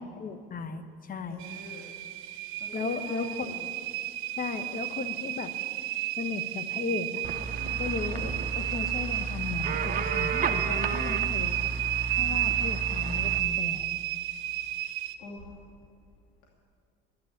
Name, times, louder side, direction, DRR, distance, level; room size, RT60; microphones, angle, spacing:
voice 1, 0.0-1.4 2.7-3.5 4.4-5.5 6.2-7.2 7.8-11.6 12.1-13.9, left 4 dB, 40° left, 10 dB, 1.2 m, -35 dB
voice 2, 1.3-1.9 2.6-3.6 7.5-7.9 12.1-12.8 15.2-15.6, left 3 dB, 75° left, -2 dB, 2.7 m, -45 dB
sound 1, 1.4-15.1, right 14 dB, 75° right, 1.0 m, -32 dB
sound 2, 7.2-13.4, right 4 dB, 40° right, 1.0 m, -33 dB
13.0 x 10.5 x 8.7 m, 2.2 s
cardioid pair, 105°, 21 cm